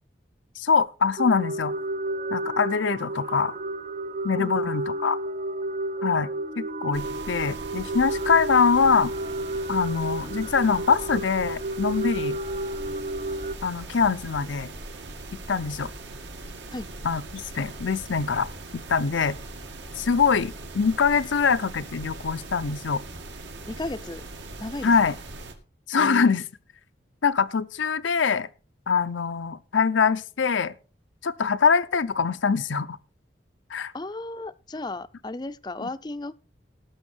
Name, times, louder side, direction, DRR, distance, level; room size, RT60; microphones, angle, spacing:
voice 1, 0.6-1.8 2.3-3.5 4.2-5.2 6.0-6.3 6.6-9.1 9.7-12.4 13.6-14.7 15.5-15.9 17.0-19.4 20.0-23.0 24.8-25.1 25.9-26.4 27.2-28.5 28.9-30.7 31.2-33.0 33.7-33.9 35.8-35.9, left 5 dB, 90° left, 0.6 m, -23 dB
sound 1, 1.2-13.6, right 1 dB, 40° right, 0.5 m, -31 dB
sound 2, 6.9-25.5, right 2 dB, 75° right, 2.1 m, -40 dB
voice 2, 23.7-24.2 24.6-25.2 26.0-26.4 33.9-36.3, left 2 dB, 20° left, 0.5 m, -35 dB
18.0 x 6.4 x 4.4 m
head